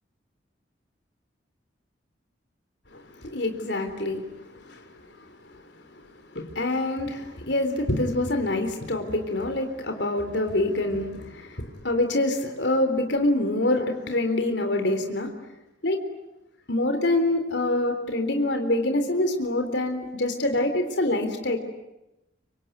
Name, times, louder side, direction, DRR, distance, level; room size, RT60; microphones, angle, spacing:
voice 1, 2.9-4.8 6.4-15.3 15.8-16.0 16.7-21.6, left 1 dB, 65° left, 5 dB, 3.7 m, -26 dB
25.5 x 25.0 x 9.4 m, 0.93 s
head